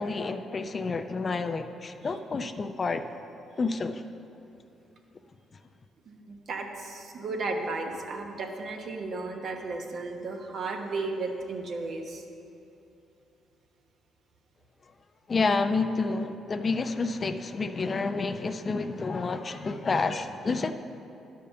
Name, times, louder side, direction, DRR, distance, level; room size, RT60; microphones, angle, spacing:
voice 1, 0.0-3.0 3.6-4.0 15.3-20.7, left 4 dB, 35° left, 9 dB, 0.5 m, -29 dB
voice 2, 6.1-12.2, right 3 dB, 60° right, 2 dB, 1.2 m, -34 dB
11.0 x 5.1 x 6.8 m, 2.7 s
cardioid pair, 90°, 0 cm